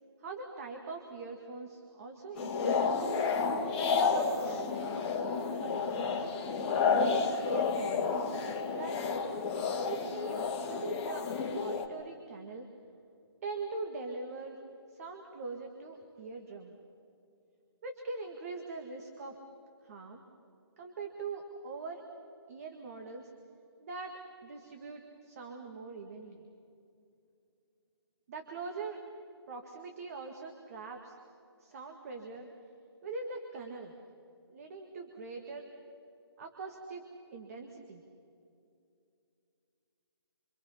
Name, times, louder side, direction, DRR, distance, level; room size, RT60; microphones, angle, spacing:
voice 1, 0.2-3.3 3.7-5.0 5.6-6.4 7.0-8.3 8.8-9.0 9.7-10.4 10.7-11.3 11.6-12.7 13.4-14.6 14.9-16.7 17.8-19.4 19.8-20.2 20.8-22.0 22.5-23.3 23.8-26.4 28.3-29.0 29.5-31.2 31.6-32.5 33.0-33.9 34.5-35.7 36.4-38.0, right 4 dB, 35° right, 3 dB, 1.9 m, -42 dB
sound 1, 2.4-11.9, left 5 dB, 20° left, 1.9 m, -31 dB
26.0 x 26.0 x 5.8 m, 2.6 s
figure-of-eight pair, 155°, 14 cm